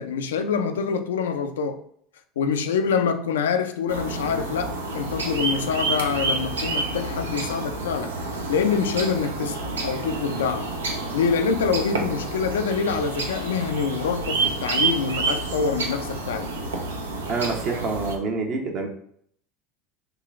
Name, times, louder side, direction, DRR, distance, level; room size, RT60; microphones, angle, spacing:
voice 1, 0.0-1.8 2.4-8.1 8.5-10.7 11.1-16.5, left 6 dB, 80° left, 0.3 m, -25 dB
sound 1, 3.9-18.2, right 3 dB, 90° right, 0.5 m, -29 dB
voice 2, 17.3-18.9, right 4 dB, 50° right, 0.8 m, -27 dB
3.7 x 2.4 x 3.4 m
hypercardioid pair, 80°, 0 cm